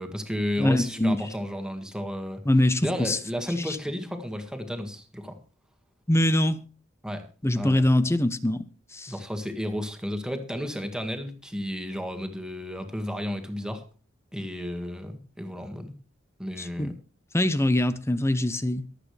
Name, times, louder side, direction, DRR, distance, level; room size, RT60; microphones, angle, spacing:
voice 1, 0.0-2.4 2.8-5.4 7.0-7.3 7.6-7.8 9.1-13.8 14.3-15.9 16.4-16.9, equal, 5° right, 1.9 m, -32 dB
voice 2, 0.6-1.2 2.4-3.2 3.7-3.8 6.1-6.6 7.4-8.6 8.9-9.1 16.6-16.9 17.3-18.9, left 1 dB, 15° left, 0.8 m, -23 dB
23.0 x 8.7 x 3.3 m
head